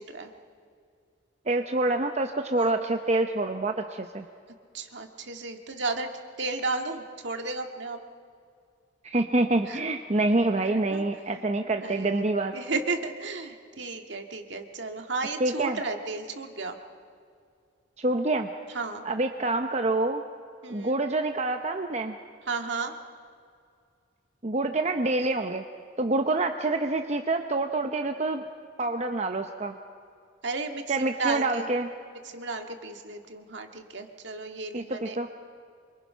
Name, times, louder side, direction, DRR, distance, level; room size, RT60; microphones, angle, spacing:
voice 1, 1.5-4.2 9.0-12.5 15.4-15.8 18.0-18.5 19.0-20.2 20.7-22.2 24.4-25.6 26.0-28.4 28.8-29.8 30.9-31.9 34.7-35.3, right 2 dB, 35° right, 5 dB, 0.8 m, -26 dB
voice 2, 4.7-6.1 6.4-8.0 9.7-9.8 10.6-16.8 18.7-19.0 20.6-21.0 22.5-22.9 30.4-31.7 32.2-35.3, right 3 dB, 65° right, 5 dB, 1.9 m, -34 dB
26.5 x 24.5 x 5.7 m, 2.3 s
head